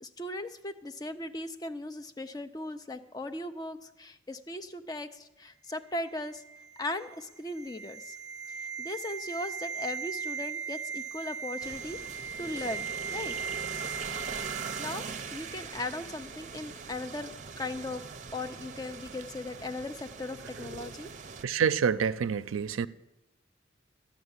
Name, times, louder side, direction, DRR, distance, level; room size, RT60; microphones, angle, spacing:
voice 1, 0.0-6.4 6.8-8.2 8.5-12.0 12.4-13.4 14.8-15.1 15.3-18.0 18.3-21.1, left 2 dB, 20° left, 0.5 m, -38 dB
sound 1, 6.1-15.3 15.6-15.7, right 6 dB, 5° right, 1.3 m, -39 dB
sound 2, 11.6-21.4, right 5 dB, 35° right, 0.6 m, -41 dB
voice 2, 21.4-22.9, right 6 dB, 85° right, 0.4 m, -27 dB
12.5 x 6.2 x 9.6 m
head